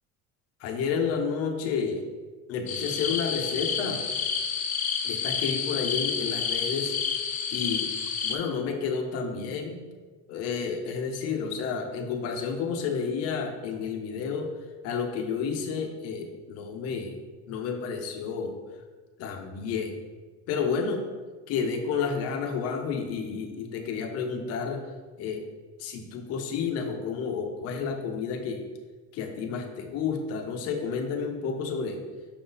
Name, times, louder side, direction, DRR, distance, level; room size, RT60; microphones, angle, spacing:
voice 1, 0.6-2.0 2.5-4.0 5.0-6.9 7.5-7.9 8.2-9.8 10.3-14.5 14.8-17.2 17.5-18.5 19.2-20.0 20.5-21.0 21.5-24.8 25.2-25.4 25.8-28.6 29.1-32.0, left 5 dB, 55° left, 5 dB, 0.8 m, -30 dB
sound 1, 2.7-8.4, left 7 dB, 25° left, 0.4 m, -29 dB
6.1 x 4.0 x 3.9 m, 1.4 s
cardioid pair, 160°, 30 cm